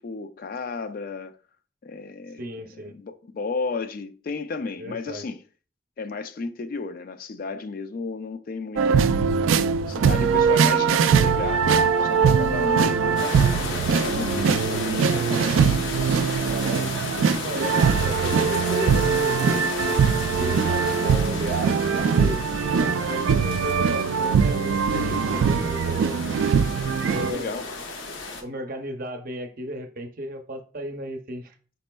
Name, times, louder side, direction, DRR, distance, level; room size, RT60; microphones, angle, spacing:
voice 1, 0.0-1.4 1.8-2.4 2.9-5.4 6.0-9.2 9.9-11.7 12.0-15.8 27.3-27.7, left 4 dB, 45° left, 0.3 m, -33 dB
voice 2, 2.4-2.9 4.8-5.2 16.4-16.8 17.4-19.6 20.3-26.2 27.1-27.7 28.4-31.5, equal, 45° right, 0.6 m, -34 dB
sound 1, 8.8-27.3, right 6 dB, 85° right, 0.3 m, -22 dB
sound 2, 13.2-28.4, left 3 dB, 80° left, 0.8 m, -34 dB
5.1 x 4.1 x 2.2 m
head